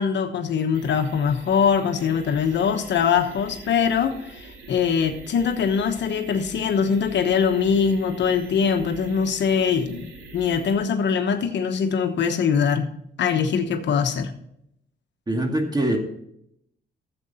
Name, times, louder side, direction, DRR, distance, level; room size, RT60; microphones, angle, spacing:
voice 1, 0.0-12.9 13.2-14.3, left 6 dB, 65° left, 1.1 m, -22 dB
sound 1, 0.7-10.7, right 4 dB, 85° right, 2.7 m, -44 dB
voice 2, 15.3-16.0, right 1 dB, 20° right, 2.1 m, -23 dB
13.0 x 7.9 x 4.2 m
cardioid pair, 90°, 20 cm